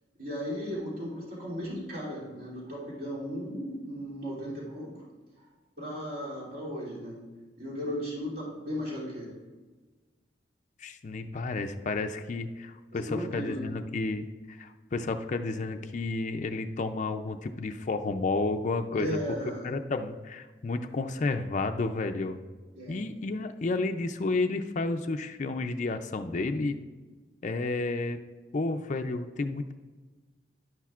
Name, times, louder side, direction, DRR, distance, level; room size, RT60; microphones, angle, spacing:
voice 1, 0.2-5.0 5.4-5.5 5.8-7.2 7.6-9.3 12.9-13.7 18.9-19.7 22.7-23.1, equal, 55° right, -7 dB, 2.8 m, -36 dB
voice 2, 10.8-19.2 19.6-22.4 22.9-26.8 27.4-28.2 28.5-29.7, left 3 dB, 45° left, 7 dB, 0.4 m, -31 dB
11.0 x 10.0 x 2.4 m, 1.3 s
head